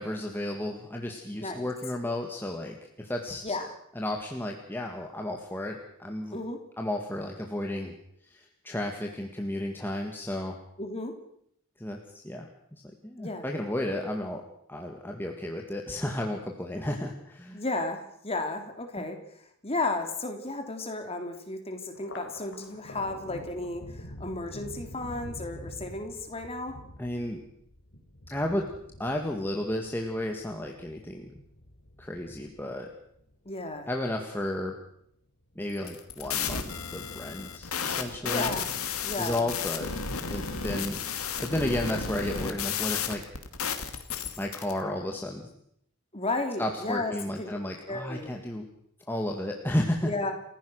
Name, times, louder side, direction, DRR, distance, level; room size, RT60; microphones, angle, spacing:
voice 1, 0.0-3.6 4.0-6.4 6.8-7.9 8.2-10.6 11.8-14.4 14.7-17.6 19.0-19.1 27.0-27.4 28.3-28.7 29.0-31.4 32.0-32.9 33.9-34.8 35.6-38.5 39.2-39.9 40.3-41.0 41.4-43.2 44.4-45.5 46.6-48.7 49.1-50.1, left 1 dB, 10° left, 1 dB, 1.9 m, -33 dB
voice 2, 1.4-1.7 3.4-3.8 6.3-6.6 10.8-11.1 13.2-13.4 17.5-19.2 19.6-26.8 33.4-33.9 38.2-38.7 39.0-39.5 46.1-47.1 47.4-47.5 47.9-48.3 50.0-50.3, left 2 dB, 25° left, 5 dB, 3.2 m, -33 dB
Thunder, 21.9-34.6 35.0-35.8 36.1-37.0, left 1 dB, 55° left, 3.4 m, -47 dB
sound 1, 35.8-44.7, left 6 dB, 75° left, 2.4 m, -33 dB
29.0 x 15.5 x 6.4 m, 0.73 s
head